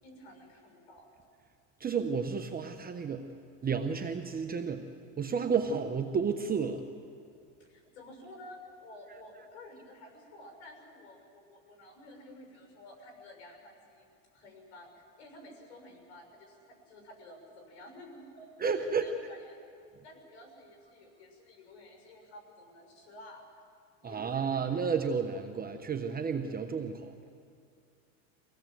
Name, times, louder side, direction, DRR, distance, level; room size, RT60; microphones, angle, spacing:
voice 1, 0.0-1.1 7.6-19.5 20.0-23.5 24.0-24.7, left 1 dB, 75° left, 3 dB, 6.7 m, -52 dB
voice 2, 1.8-3.3 3.6-4.8 5.2-6.8 18.6-19.1 24.0-27.2, right 6 dB, 25° right, 6 dB, 1.0 m, -31 dB
25.0 x 17.0 x 7.8 m, 2.3 s
supercardioid pair, 110°, 38 cm